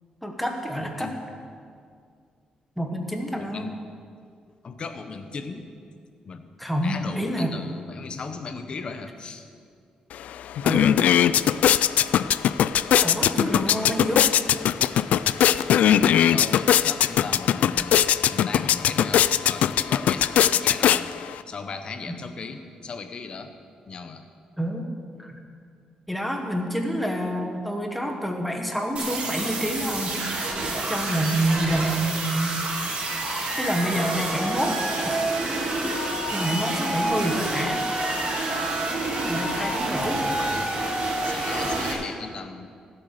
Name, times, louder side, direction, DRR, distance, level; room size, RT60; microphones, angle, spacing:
voice 1, 0.2-1.1 2.8-3.6 6.6-7.6 10.6-11.0 13.0-14.3 22.1-22.2 24.6-24.9 25.2-25.4 26.1-30.2 30.9-32.6 33.6-34.8 35.0-35.2 36.3-37.8 39.2-40.2, right 1 dB, ahead, 2 dB, 1.4 m, -27 dB
voice 2, 0.8-1.1 3.4-3.8 4.6-5.6 6.2-6.5 6.8-9.5 13.7-13.8 15.8-17.9 18.3-21.1 21.5-23.5 23.9-24.2 40.2-40.7 41.2-42.7, left 4 dB, 40° left, 8 dB, 1.0 m, -37 dB
sound 1, 10.1-10.2 10.5-21.4, left 10 dB, 80° left, 0.3 m, -20 dB
sound 2, 29.0-41.9, right 2 dB, 60° right, 2.9 m, -28 dB
15.0 x 8.0 x 6.6 m, 2.2 s
wide cardioid pair, 155°, 2 cm